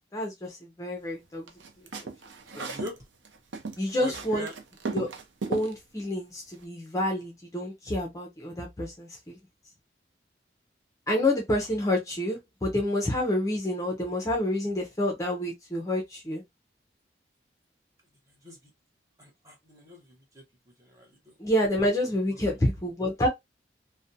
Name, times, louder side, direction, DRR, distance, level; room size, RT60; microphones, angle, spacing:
voice 1, 0.1-1.5 2.0-2.1 2.5-2.7 3.8-4.5 4.9-5.1 5.5-9.4 11.1-16.4 21.4-23.3, left 1 dB, 20° left, 0.5 m, -28 dB
sound 1, 1.5-3.0 3.2-5.7, right 4 dB, 90° right, 0.5 m, -36 dB
voice 2, 2.6-3.0 4.0-4.5 18.4-18.6 19.2-20.4 20.8-21.3 22.3-22.4, left 1 dB, 20° right, 0.8 m, -42 dB
2.5 x 2.1 x 2.6 m
head